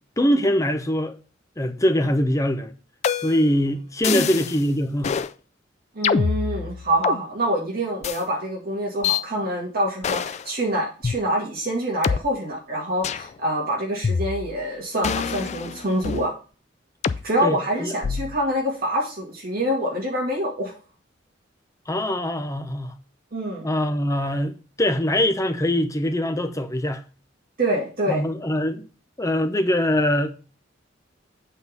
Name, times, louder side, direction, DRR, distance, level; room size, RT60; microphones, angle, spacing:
voice 1, 0.2-1.1 1.6-2.7 3.2-5.2 17.4-17.9 21.9-22.9 23.6-27.0 28.1-28.8 29.2-30.4, left 1 dB, 15° left, 0.7 m, -23 dB
sound 1, 3.0-3.5 4.0-4.6 5.0-5.3 6.0-7.2 8.0-8.2 9.0-9.2 10.0-10.5 11.0-11.1 12.0-12.2 13.0-13.3 14.0-14.6 15.0-16.3 17.0-17.2 18.0-18.4, left 6 dB, 35° left, 0.3 m, -25 dB
voice 2, 5.9-16.3 17.2-20.7 23.3-23.7 27.6-28.3, right 1 dB, 50° right, 2.1 m, -26 dB
8.2 x 3.8 x 5.3 m
head